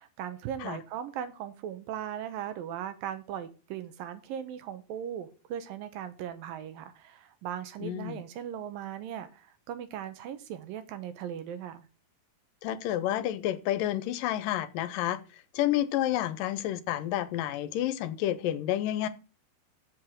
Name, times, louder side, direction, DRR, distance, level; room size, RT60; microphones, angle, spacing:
voice 1, 0.0-11.9, right 9 dB, 80° right, 2.8 m, -38 dB
voice 2, 7.8-8.2 12.6-15.2 15.5-19.1, left 12 dB, 80° left, 2.4 m, -30 dB
7.8 x 6.7 x 7.5 m
omnidirectional pair, 4.0 m